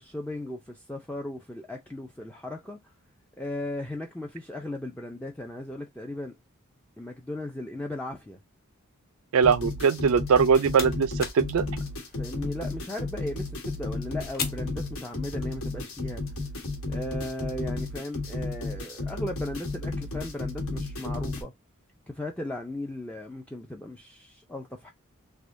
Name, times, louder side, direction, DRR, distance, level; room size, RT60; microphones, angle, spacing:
voice 1, 0.0-2.9 3.4-6.3 7.0-8.4 12.1-16.2 16.9-21.5 22.1-24.9, left 1 dB, 5° left, 0.4 m, -36 dB
voice 2, 9.3-11.6, right 6 dB, 70° right, 0.4 m, -21 dB
sound 1, 9.4-21.4, left 2 dB, 75° left, 1.2 m, -33 dB
sound 2, 13.4-15.6, left 6 dB, 40° left, 0.9 m, -41 dB
3.5 x 2.9 x 2.5 m
head